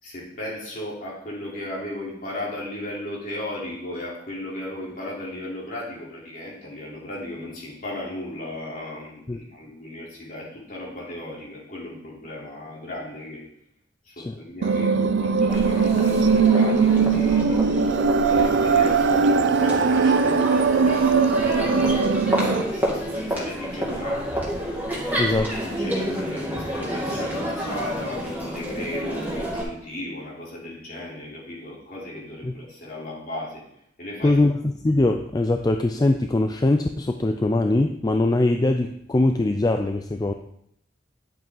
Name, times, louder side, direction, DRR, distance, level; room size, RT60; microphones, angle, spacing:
voice 1, 0.0-13.4 14.0-17.6 18.1-25.3 25.6-33.6 34.0-34.4, left 1 dB, 50° left, -4 dB, 3.5 m, -36 dB
sound 1, 14.6-22.6, right 5 dB, 85° right, 0.5 m, -20 dB
Crowd, 15.5-29.6, equal, 10° right, 2.3 m, -29 dB
voice 2, 25.2-25.5 32.4-32.5 34.2-40.3, left 2 dB, 20° left, 6 dB, 0.4 m, -22 dB
10.5 x 7.3 x 3.9 m, 0.74 s
head